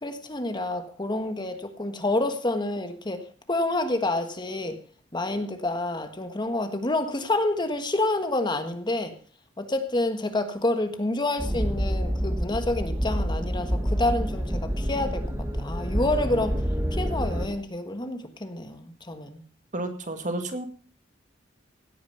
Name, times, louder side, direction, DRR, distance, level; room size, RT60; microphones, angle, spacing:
voice 1, 0.0-4.8 5.1-9.2 9.6-16.6 16.9-19.4, left 2 dB, 25° left, 1.5 m, -28 dB
sound 1, 11.4-17.5, equal, 15° right, 1.6 m, -28 dB
voice 2, 19.7-20.7, right 2 dB, 40° right, 2.0 m, -31 dB
17.0 x 9.4 x 5.5 m
head